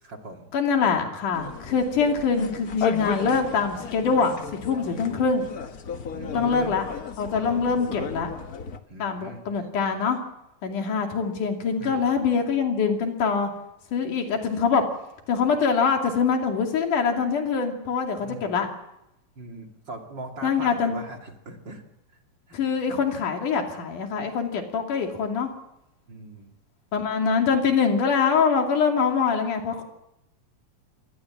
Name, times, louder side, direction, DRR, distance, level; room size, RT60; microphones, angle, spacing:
voice 1, 0.0-0.5 4.9-5.2 6.1-6.8 8.9-9.4 11.8-12.1 18.2-18.5 19.4-21.8 22.5-22.6 26.1-26.5, right 2 dB, 40° right, 3 dB, 2.8 m, -40 dB
voice 2, 0.5-5.5 6.3-6.9 7.2-8.3 9.0-10.2 10.6-13.5 13.9-14.8 15.3-18.7 20.4-20.9 22.5-25.5 26.9-29.8, left 5 dB, 90° left, 3 dB, 4.2 m, -24 dB
sound 1, 1.3-8.8, left 6 dB, 70° left, 0.8 m, -34 dB
24.5 x 19.0 x 7.4 m, 0.88 s
omnidirectional pair, 3.5 m